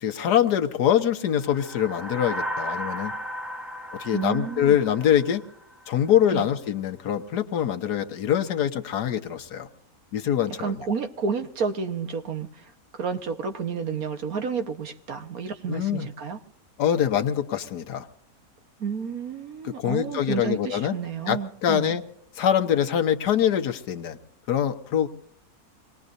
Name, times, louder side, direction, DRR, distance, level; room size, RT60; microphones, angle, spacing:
voice 1, 0.0-3.1 4.0-5.4 5.9-9.7 10.1-10.8 15.7-16.1 16.8-18.1 19.6-20.9 21.3-22.0 22.4-24.2 24.5-25.1, left 10 dB, 85° left, 6 dB, 1.5 m, -24 dB
sound 1, 1.3-5.9, equal, ahead, 1.1 m, -35 dB
voice 2, 4.1-4.8 6.3-6.5 10.6-16.4 18.8-22.0, right 6 dB, 65° right, 7 dB, 1.6 m, -31 dB
26.0 x 19.0 x 2.6 m, 0.69 s
omnidirectional pair, 1.7 m